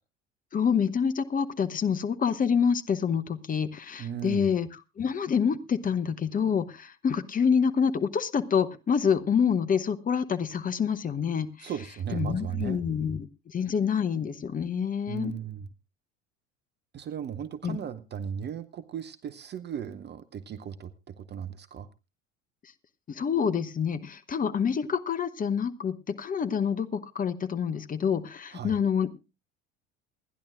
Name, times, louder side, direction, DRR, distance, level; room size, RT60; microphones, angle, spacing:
voice 1, 0.5-4.7 5.0-11.7 12.1-13.3 13.5-15.3 17.6-17.8 23.1-29.2, left 7 dB, 20° left, 11 dB, 0.8 m, -27 dB
voice 2, 4.0-4.5 11.6-12.8 15.1-15.7 16.9-21.9 28.5-28.8, right 8 dB, 25° right, 14 dB, 0.6 m, -36 dB
28.0 x 10.5 x 2.5 m, 0.29 s
figure-of-eight pair, 65°, 38 cm